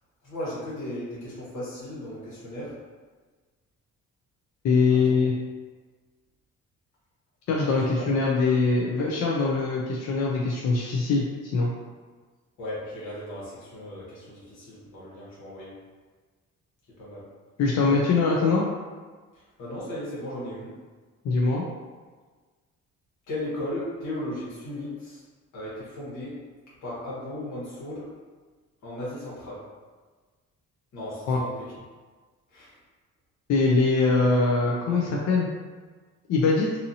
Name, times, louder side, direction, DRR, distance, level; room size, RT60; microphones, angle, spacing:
voice 1, 0.2-2.8 4.9-5.2 7.7-8.1 12.6-15.7 17.0-17.3 19.3-20.7 23.3-25.2 25.5-26.4 26.8-28.1 28.8-29.6 30.9-31.8 32.5-32.7, left 1 dB, 90° left, -8 dB, 1.4 m, -36 dB
voice 2, 4.6-5.3 7.5-11.2 11.5-11.7 17.6-18.6 21.2-21.6 31.3-31.4 33.5-35.5 36.3-36.7, left 3 dB, 60° left, -3 dB, 0.5 m, -22 dB
2.8 x 2.6 x 2.7 m, 1.4 s
cardioid pair, 90°, 30 cm